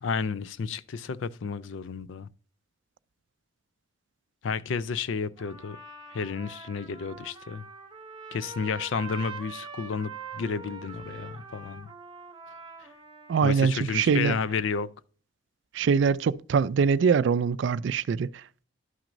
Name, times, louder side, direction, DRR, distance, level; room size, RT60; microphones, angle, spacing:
voice 1, 0.0-2.3 4.4-5.8 6.1-7.6 8.3-11.9 12.8-12.9 13.4-14.9, left 5 dB, 70° left, 0.4 m, -31 dB
Trumpet, 5.4-13.9, right 4 dB, 25° right, 0.7 m, -44 dB
voice 2, 13.3-14.4 15.7-18.4, right 6 dB, 65° right, 0.3 m, -23 dB
11.0 x 6.0 x 2.6 m
head